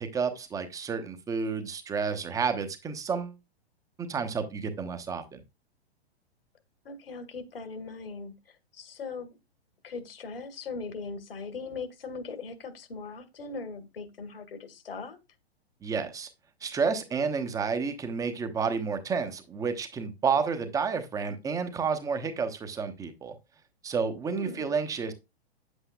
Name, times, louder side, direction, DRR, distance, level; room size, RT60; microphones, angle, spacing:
voice 1, 0.0-3.3 4.0-5.4 15.8-16.3 16.6-23.4 23.8-25.1, right 5 dB, 10° right, 0.9 m, -30 dB
voice 2, 6.9-9.3 9.8-15.2 24.3-24.7, left 4 dB, 60° left, 1.9 m, -40 dB
9.7 x 8.0 x 2.3 m
figure-of-eight pair, 110°, 31 cm